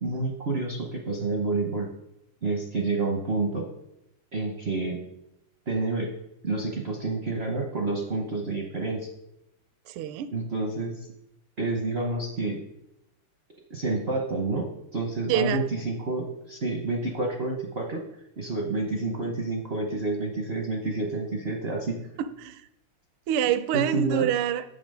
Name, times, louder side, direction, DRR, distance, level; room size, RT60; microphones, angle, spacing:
voice 1, 0.0-1.9 2.4-3.7 4.3-5.0 5.7-6.1 6.4-9.1 10.3-11.0 11.6-12.6 13.7-14.6 14.9-18.0 18.4-22.0 23.7-24.3, right 2 dB, 60° right, 1 dB, 0.6 m, -29 dB
voice 2, 9.9-10.3 15.3-15.6 22.2-22.6 23.3-24.6, right 10 dB, 80° right, 13 dB, 1.5 m, -26 dB
7.1 x 6.6 x 5.4 m, 0.81 s
omnidirectional pair, 2.4 m